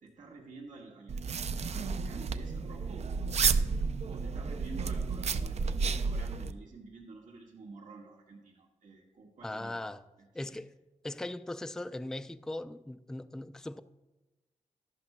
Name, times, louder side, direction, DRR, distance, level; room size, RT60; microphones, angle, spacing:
voice 1, 0.0-3.1 4.0-9.8 10.4-10.6, right 3 dB, 80° right, 1.7 m, -50 dB
sound 1, 1.1-6.5, right 5 dB, 60° right, 0.5 m, -31 dB
voice 2, 9.4-10.0 10.3-10.7 11.0-13.8, left 1 dB, 5° left, 0.3 m, -39 dB
13.0 x 11.5 x 2.2 m
cardioid pair, 85°, 13 cm